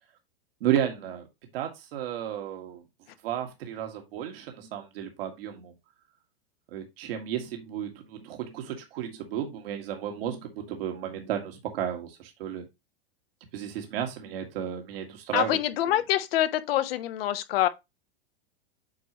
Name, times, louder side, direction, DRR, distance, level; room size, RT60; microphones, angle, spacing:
voice 1, 0.6-1.3 1.5-2.8 3.2-5.7 6.7-12.7 13.5-15.6, right 10 dB, 65° right, 2.0 m, -33 dB
voice 2, 15.3-17.7, left 13 dB, 65° left, 1.1 m, -25 dB
8.6 x 4.9 x 2.9 m
hypercardioid pair, 120°, 31 cm